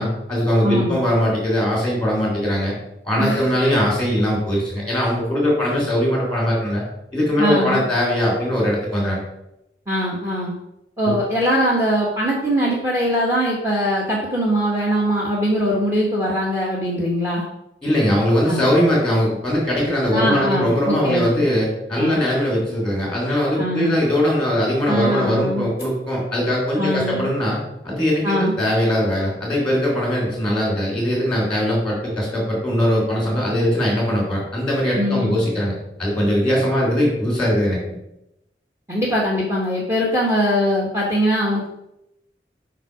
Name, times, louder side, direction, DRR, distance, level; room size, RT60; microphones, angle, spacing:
voice 1, 0.0-2.7 3.0-6.8 7.1-9.2 11.0-11.2 17.8-38.0, equal, 5° left, -3 dB, 3.3 m, -20 dB
voice 2, 0.6-1.0 3.2-3.5 7.4-7.8 9.9-10.5 11.0-17.4 18.5-18.7 20.1-21.4 21.9-22.2 23.6-24.0 24.8-25.7 26.8-27.3 28.2-28.6 34.9-35.4 38.9-41.7, equal, 15° right, -3 dB, 1.3 m, -22 dB
7.5 x 5.3 x 4.9 m, 0.85 s
head